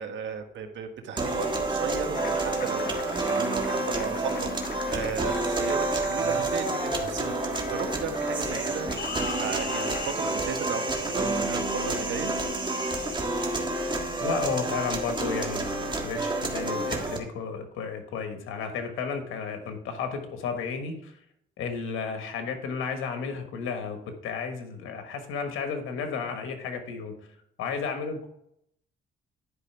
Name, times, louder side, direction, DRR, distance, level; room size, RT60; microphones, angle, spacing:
voice 1, 0.0-12.3, right 6 dB, 70° right, 5 dB, 1.5 m, -35 dB
sound 1, 1.2-17.2, right 2 dB, 25° right, 1.6 m, -29 dB
Applause, 2.1-10.1, left 7 dB, 50° left, 0.7 m, -39 dB
voice 2, 14.2-21.2 21.6-27.1 27.6-28.3, left 5 dB, 85° left, 6 dB, 1.4 m, -33 dB
11.0 x 4.9 x 4.6 m, 0.75 s
cardioid pair, 90°, 20 cm